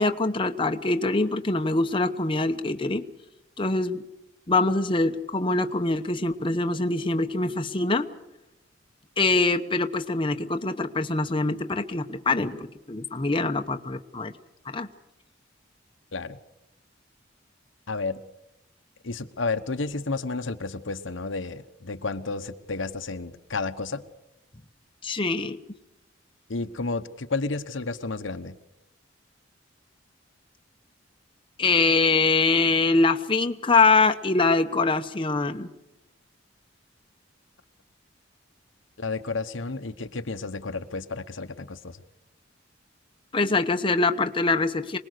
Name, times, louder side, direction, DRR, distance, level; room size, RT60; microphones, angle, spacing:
voice 1, 0.0-3.1 3.6-4.0 4.5-8.1 9.2-14.3 14.7-14.9 25.0-25.6 31.6-35.7 43.3-45.0, left 3 dB, 25° left, 6 dB, 0.9 m, -24 dB
voice 2, 17.9-18.2 19.0-24.0 26.5-28.5 39.0-42.0, left 3 dB, 80° left, 9 dB, 1.1 m, -31 dB
26.0 x 19.5 x 6.6 m, 0.92 s
head